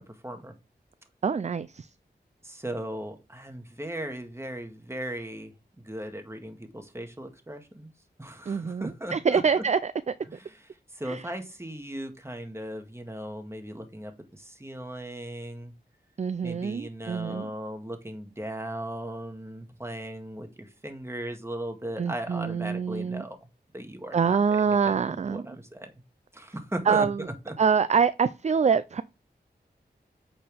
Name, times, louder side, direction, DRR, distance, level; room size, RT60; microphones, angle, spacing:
voice 1, 0.1-0.5 2.4-7.9 8.2-9.6 10.3-15.7 16.4-23.4 23.7-24.4 24.6-25.9 26.3-27.1 27.5-27.6, right 1 dB, 15° right, 1.7 m, -37 dB
voice 2, 1.2-1.9 8.5-9.9 11.1-11.2 16.2-17.5 22.0-23.2 24.1-25.4 26.9-27.2 27.6-29.0, right 6 dB, 40° right, 0.4 m, -25 dB
8.5 x 4.4 x 3.4 m
cardioid pair, 45°, 18 cm